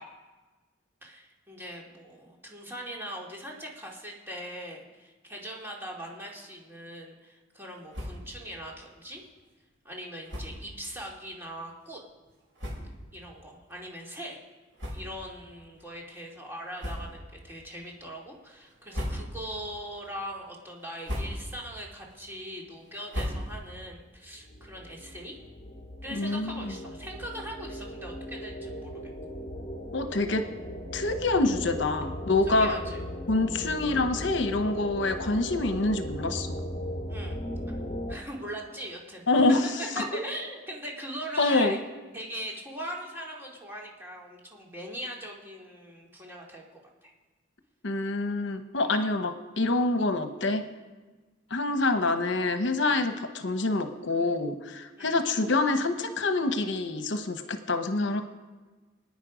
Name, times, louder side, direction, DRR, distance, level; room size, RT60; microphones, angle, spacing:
voice 1, 1.0-9.2 9.8-12.0 13.1-14.4 14.9-25.3 26.0-29.0 32.5-33.0 37.1-37.4 38.1-39.3 40.0-41.8 42.1-46.6 47.0-47.1 48.8-48.9 55.0-55.2, equal, 10° right, -2 dB, 2.6 m, -40 dB
sound 1, 7.9-8.4 8.7-8.8 9.1-9.3 10.2-10.7 11.4-11.5 12.2-12.3 12.6-13.1 13.7-13.8 14.7-15.4 15.8-15.9 16.7-17.4 17.8-18.2 18.7-19.6 20.0-20.4 20.8-21.7 22.0-23.9, equal, 80° right, 6.1 m, -37 dB
sound 2, 24.4-38.2, equal, 35° left, 1.3 m, -38 dB
voice 2, 26.1-26.7 29.9-30.5 30.9-32.7 33.3-36.6 39.3-39.7 40.0-40.2 41.4-41.8 47.8-50.6 51.5-58.2, left 2 dB, 70° left, 8 dB, 1.0 m, -26 dB
25.0 x 9.5 x 5.1 m, 1.3 s
head